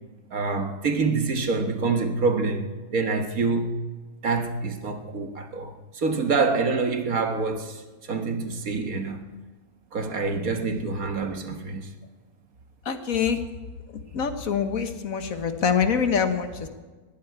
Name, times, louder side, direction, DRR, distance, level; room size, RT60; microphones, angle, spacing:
voice 1, 0.3-3.8 4.2-9.3 9.9-11.9, right 4 dB, 65° right, 1.9 m, -26 dB
voice 2, 12.8-13.4 14.1-16.7, left 6 dB, 65° left, 1.6 m, -25 dB
20.5 x 15.0 x 4.8 m
omnidirectional pair, 1.6 m